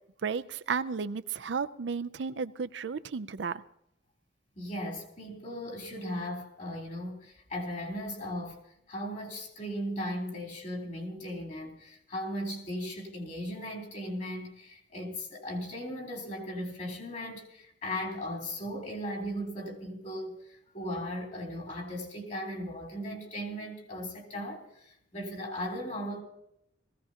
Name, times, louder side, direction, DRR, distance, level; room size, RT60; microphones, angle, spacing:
voice 1, 0.2-3.6, right 5 dB, 80° right, 0.5 m, -33 dB
voice 2, 4.5-26.2, equal, 45° left, 3.4 m, -37 dB
19.5 x 15.5 x 2.9 m
head